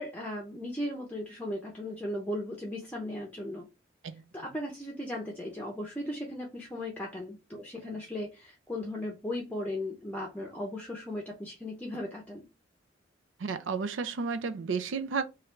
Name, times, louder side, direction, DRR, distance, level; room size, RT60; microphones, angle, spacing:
voice 1, 0.0-3.7 4.3-12.4, left 1 dB, 10° left, 0.6 m, -37 dB
voice 2, 13.4-15.3, right 5 dB, 85° right, 0.4 m, -32 dB
3.1 x 2.5 x 4.3 m
head